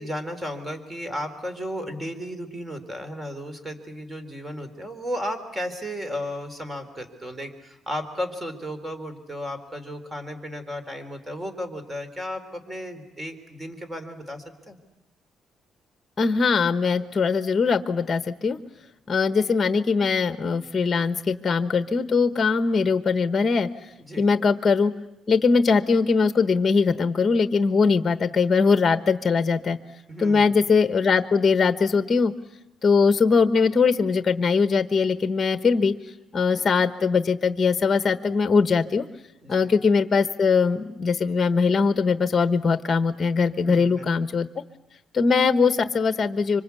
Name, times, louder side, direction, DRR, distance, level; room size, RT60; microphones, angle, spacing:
voice 1, 0.0-14.8 24.0-24.3 30.1-30.6 39.4-39.7 43.6-44.1, equal, 15° right, 10 dB, 3.9 m, -34 dB
voice 2, 16.2-18.6 19.1-23.7 24.2-24.9 25.3-29.8 30.2-32.3 32.8-35.9 36.3-39.0 39.5-44.5 45.1-46.6, left 5 dB, 35° left, 11 dB, 1.2 m, -21 dB
26.0 x 25.0 x 8.4 m, 0.87 s
cardioid pair, 90°, 0 cm